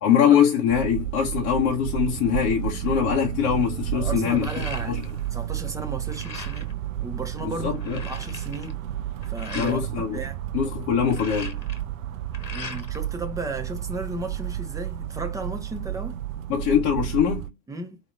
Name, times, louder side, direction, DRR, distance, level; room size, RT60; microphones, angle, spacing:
voice 1, 0.0-5.0 7.4-8.0 9.5-10.2 10.5-11.6 16.5-17.5, left 8 dB, 30° left, 1.0 m, -23 dB
sound 1, 0.7-17.5, right 13 dB, 50° right, 0.7 m, -32 dB
voice 2, 3.9-5.0 5.3-6.7 7.0-8.9 9.2-10.4 12.5-16.2 17.7-18.0, right 2 dB, 5° right, 1.0 m, -35 dB
sound 2, 4.1-5.3 5.6-6.8 7.3-7.4 7.6-9.8 10.8-13.1 13.4-14.3, left 4 dB, 85° left, 1.3 m, -40 dB
4.6 x 3.0 x 3.2 m
figure-of-eight pair, 95°, 50 cm